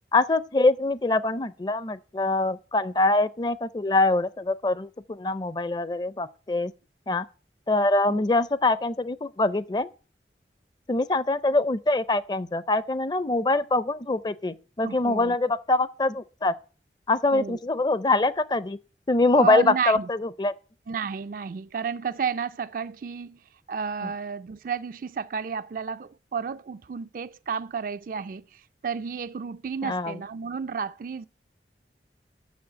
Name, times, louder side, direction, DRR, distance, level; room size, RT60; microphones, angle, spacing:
voice 1, 0.1-6.7 7.1-7.2 7.7-9.9 10.9-16.5 17.1-18.8 19.1-20.5 24.0-24.1 29.8-30.2, left 2 dB, 25° left, 0.5 m, -24 dB
voice 2, 14.8-15.4 17.3-17.6 19.4-20.1 20.9-23.4 23.7-28.4 28.8-31.3, right 6 dB, 50° right, 0.4 m, -31 dB
7.1 x 6.6 x 7.4 m
head